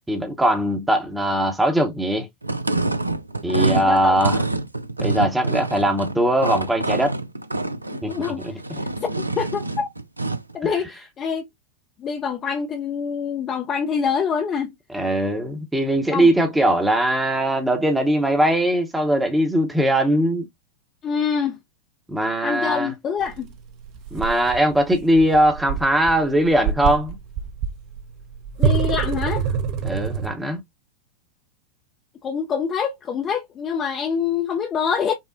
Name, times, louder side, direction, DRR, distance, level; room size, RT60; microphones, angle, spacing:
voice 1, 0.1-2.3 3.4-4.4 5.0-7.1 8.0-8.1 8.4-8.5 10.6-10.7 14.9-20.5 22.1-22.9 24.1-27.2 29.8-30.6, right 1 dB, 5° right, 0.8 m, -20 dB
sound 1, 2.4-10.5, right 2 dB, 85° right, 0.3 m, -26 dB
voice 2, 3.5-4.2 7.9-9.9 10.5-11.5 12.0-14.7 16.1-16.3 21.0-21.6 22.4-23.5 28.6-29.6 32.2-35.1, left 6 dB, 25° left, 0.5 m, -26 dB
sound 2, 23.2-30.3, right 7 dB, 40° right, 0.7 m, -26 dB
5.5 x 2.1 x 2.5 m
figure-of-eight pair, 90°, 0 cm